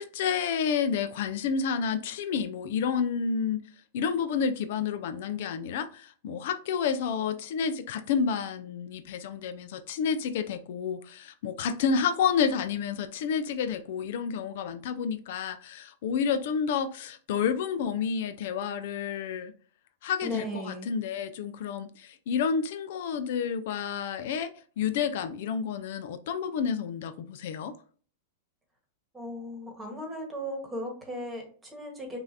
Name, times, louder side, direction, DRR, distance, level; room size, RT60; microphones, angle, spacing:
voice 1, 0.0-3.6 3.9-19.5 20.0-27.8, left 6 dB, 65° left, 0.4 m, -30 dB
voice 2, 20.2-20.9 29.1-32.2, equal, 10° right, 1.3 m, -36 dB
5.4 x 2.5 x 2.7 m
supercardioid pair, 140°, 0 cm